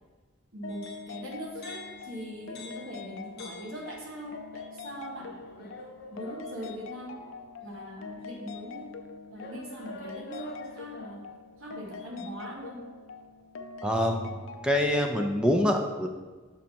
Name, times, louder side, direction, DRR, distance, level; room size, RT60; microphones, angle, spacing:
voice 1, 0.5-5.7 6.1-7.2 7.6-8.9 9.3-11.3 11.6-12.9, equal, 90° right, -1 dB, 1.4 m, -41 dB
sound 1, 0.6-15.4, left 4 dB, 80° left, 0.5 m, -44 dB
sound 2, 0.7-4.3 5.2-7.5 8.2-8.3 9.4-11.3, left 2 dB, 50° left, 0.8 m, -48 dB
voice 2, 13.8-16.1, left 1 dB, 5° right, 3 dB, 0.5 m, -26 dB
6.2 x 4.1 x 4.4 m, 1.4 s
head